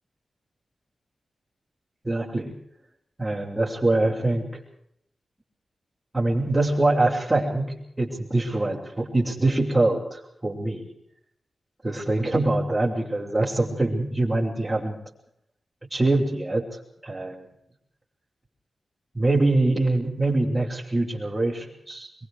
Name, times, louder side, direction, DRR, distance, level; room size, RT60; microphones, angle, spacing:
voice 1, 2.0-2.5 3.2-4.6 6.1-10.9 11.8-15.0 15.9-17.5 19.1-22.1, right 2 dB, 20° right, -7 dB, 6.1 m, -24 dB
25.5 x 22.5 x 5.0 m, 0.73 s
wide cardioid pair, 75°, 0 cm